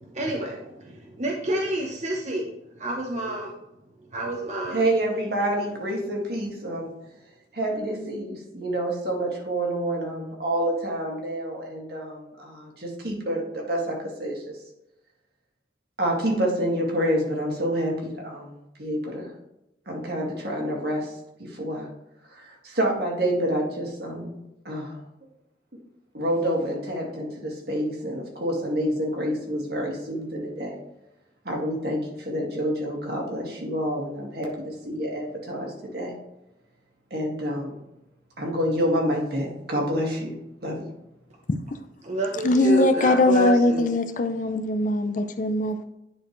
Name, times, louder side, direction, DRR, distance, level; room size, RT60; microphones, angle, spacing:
voice 1, 0.1-2.5 2.8-3.5 4.1-4.8 42.0-43.9, equal, 40° right, 0.9 m, -28 dB
voice 2, 4.7-6.9 7.5-14.5 16.0-19.3 19.9-21.1 21.4-21.9 22.3-24.3 24.7-25.0 26.1-30.8 31.5-36.1 37.1-37.8 38.4-40.3 40.6-40.9, right 1 dB, 60° right, 2.0 m, -28 dB
voice 3, 42.4-45.8, left 1 dB, 45° left, 0.5 m, -21 dB
10.0 x 4.3 x 3.1 m
head